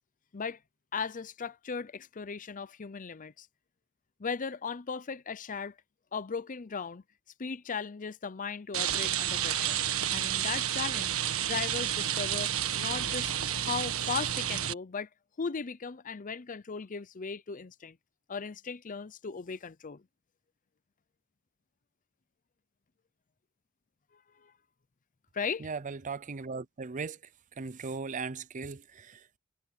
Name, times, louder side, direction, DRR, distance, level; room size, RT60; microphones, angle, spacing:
voice 1, 0.9-3.5 4.2-5.8 6.1-7.0 7.4-9.8 10.1-11.1 11.4-15.1 15.4-18.0 18.3-20.0 24.4-24.5 25.3-25.7, left 5 dB, 35° left, 0.6 m, -37 dB
Rain, 8.7-14.7, right 10 dB, 70° right, 1.5 m, -30 dB
voice 2, 25.6-27.2 27.6-29.4, right 4 dB, 35° right, 0.5 m, -38 dB
head